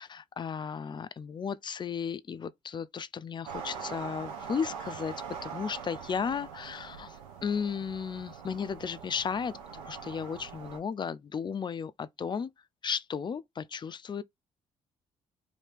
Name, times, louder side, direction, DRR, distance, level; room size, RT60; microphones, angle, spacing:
voice 1, 0.0-5.1 5.4-7.2 7.4-12.5 12.8-14.2, left 6 dB, 30° left, 0.4 m, -34 dB
sound 1, 3.4-10.8, right 6 dB, 85° right, 0.6 m, -43 dB
2.8 x 2.7 x 3.4 m
hypercardioid pair, 45°, 16 cm